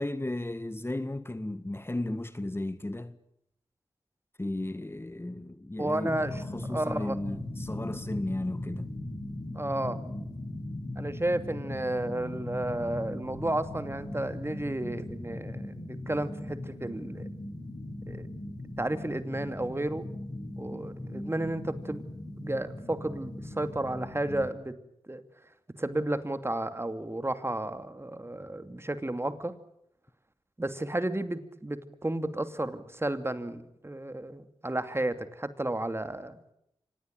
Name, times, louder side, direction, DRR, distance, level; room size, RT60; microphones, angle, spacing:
voice 1, 0.0-3.2 4.4-6.2 6.5-8.9, left 1 dB, 25° left, 1.6 m, -34 dB
voice 2, 5.8-6.4 6.7-7.2 9.5-10.0 11.0-17.3 18.1-18.3 18.8-20.1 20.6-22.0 22.4-24.7 25.1-25.2 25.8-29.5 30.6-36.4, right 1 dB, 25° right, 2.6 m, -32 dB
sound 1, 6.0-24.5, left 1 dB, 40° left, 7.0 m, -39 dB
25.5 x 19.0 x 9.0 m
cardioid pair, 40°, 10 cm